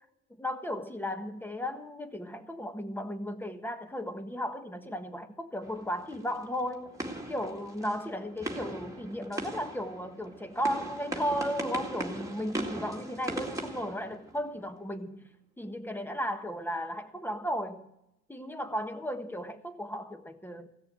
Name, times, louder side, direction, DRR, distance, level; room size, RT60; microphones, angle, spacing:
voice 1, 0.4-7.0 7.3-15.3 15.6-17.9 18.3-20.7, equal, 5° left, 1.4 m, -35 dB
sound 1, 5.6-14.7, right 1 dB, 10° right, 2.1 m, -39 dB
16.5 x 6.8 x 8.8 m
cardioid pair, 90°, 30 cm